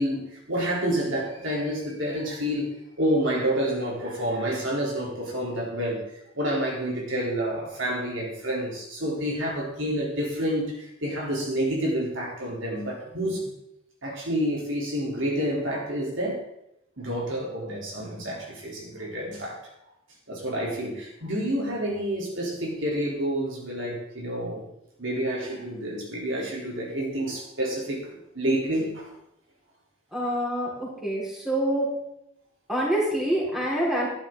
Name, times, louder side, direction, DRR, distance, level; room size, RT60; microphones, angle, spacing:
voice 1, 0.0-13.5 14.0-16.4 17.0-19.6 20.3-24.7 25.0-29.1, equal, 60° right, -3 dB, 3.5 m, -29 dB
voice 2, 30.1-31.9 32.7-34.1, right 1 dB, ahead, -6 dB, 4.6 m, -26 dB
13.5 x 12.0 x 3.8 m, 0.82 s
head